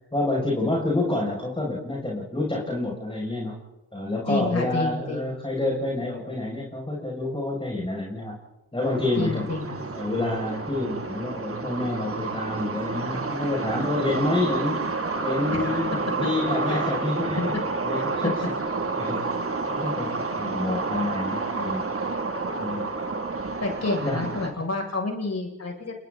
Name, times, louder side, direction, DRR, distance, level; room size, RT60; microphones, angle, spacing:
voice 1, 0.1-3.6 3.9-8.3 8.7-9.5 9.9-14.8 15.2-17.5 17.8-18.5 18.9-19.3 19.7-21.9 22.6-22.9 24.0-24.2, left 2 dB, 15° left, -3 dB, 7.7 m, -28 dB
voice 2, 4.3-5.3 9.2-9.8 15.5-15.8 16.7-17.3 18.0-18.1 23.6-25.9, left 2 dB, 50° left, 1 dB, 7.7 m, -29 dB
sound 1, 8.8-24.5, right 3 dB, 40° right, 3.3 m, -29 dB
28.5 x 23.5 x 4.4 m, 0.95 s
supercardioid pair, 50°, 34 cm